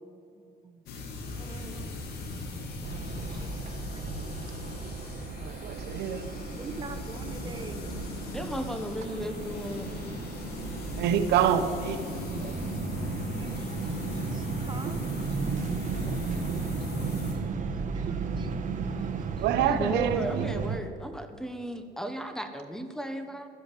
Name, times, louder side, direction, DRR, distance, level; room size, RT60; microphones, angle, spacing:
voice 1, 0.0-0.9 1.4-2.7 3.2-4.1 4.4-4.8 6.6-8.3 13.3-16.0 16.3-17.6 17.9-19.5, right 4 dB, 25° right, 6 dB, 1.7 m, -48 dB
sound 1, 0.9-17.3, left 3 dB, 70° left, 3.0 m, -39 dB
sound 2, 2.8-20.8, right 5 dB, 50° right, 1.5 m, -35 dB
voice 2, 5.4-6.3 11.0-12.6 19.4-20.5, right 9 dB, 85° right, 9 dB, 1.1 m, -27 dB
voice 3, 8.3-9.8 19.6-23.5, equal, 5° left, 8 dB, 1.2 m, -35 dB
13.0 x 11.0 x 8.2 m, 2.5 s
cardioid pair, 110°, 17 cm